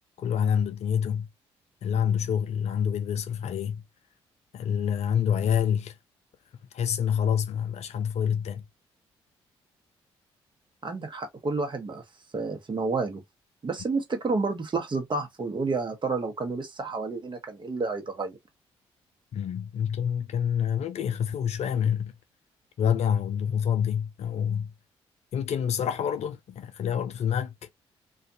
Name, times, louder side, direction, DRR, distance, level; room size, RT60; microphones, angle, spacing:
voice 1, 0.2-1.3 1.8-3.8 4.5-5.9 6.7-8.6 19.3-22.1 22.8-24.7 25.3-27.5, left 8 dB, 55° left, 0.4 m, -27 dB
voice 2, 10.8-12.0 12.3-13.2 13.6-18.4, right 3 dB, 35° right, 1.1 m, -30 dB
2.5 x 2.4 x 2.7 m
hypercardioid pair, 45°, 13 cm